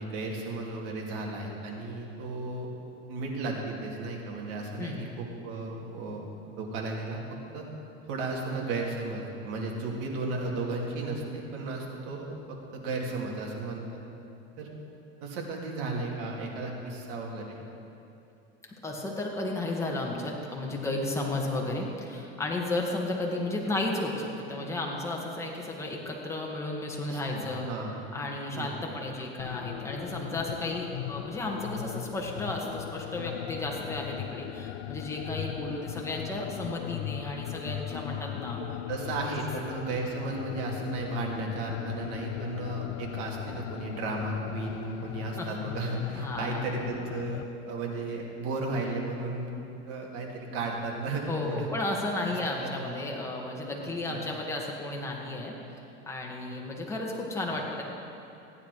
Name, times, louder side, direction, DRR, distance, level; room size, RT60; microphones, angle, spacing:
voice 1, 0.0-2.7 3.1-6.3 6.6-7.2 7.5-7.6 8.0-14.0 14.6-14.7 15.2-17.6 27.0-28.1 28.5-28.9 38.6-51.7 52.2-52.3 52.6-53.1 53.8-54.3, right 3 dB, 65° right, -1 dB, 2.5 m, -34 dB
voice 2, 18.8-27.7 28.1-38.6 45.3-45.6 46.2-46.6 51.3-55.6 56.1-57.8, left 2 dB, 10° left, -2 dB, 1.9 m, -33 dB
sound 1, 29.4-47.4, left 13 dB, 85° left, 0.5 m, -38 dB
15.0 x 9.7 x 4.8 m, 2.7 s
supercardioid pair, 120°, 32 cm